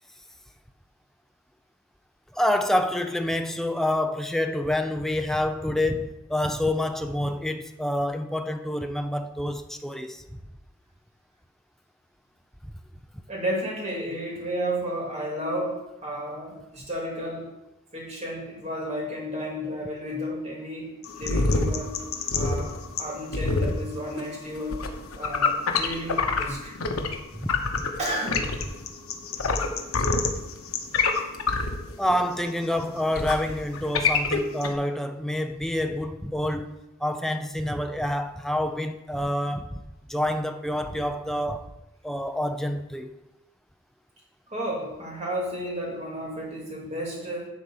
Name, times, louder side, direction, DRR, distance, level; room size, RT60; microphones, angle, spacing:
voice 1, 2.3-10.4 12.6-12.7 27.3-27.8 32.0-39.8 40.1-41.7 42.0-43.1, left 1 dB, ahead, 0.5 m, -27 dB
voice 2, 13.3-17.5 17.9-21.9 22.3-24.8 25.2-26.8 28.0-28.5 31.5-31.6 33.5-33.6 44.5-47.5, equal, 30° right, 3.0 m, -32 dB
sound 1, 21.0-27.2 27.4-34.7, left 4 dB, 85° left, 1.0 m, -26 dB
10.5 x 4.4 x 6.6 m
head